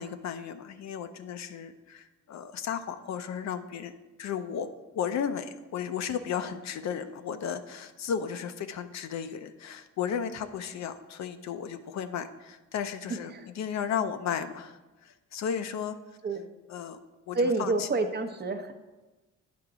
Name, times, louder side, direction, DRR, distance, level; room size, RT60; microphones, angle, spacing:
voice 1, 0.0-3.9 4.2-4.7 5.0-16.0 16.7-17.0 17.3-17.9, left 8 dB, 65° left, 9 dB, 0.6 m, -34 dB
voice 2, 13.1-13.5 13.9-14.0 16.2-16.5 17.3-18.7, right 3 dB, 35° right, 6 dB, 0.8 m, -29 dB
9.4 x 3.8 x 4.7 m, 1.1 s
cardioid pair, 90°, 30 cm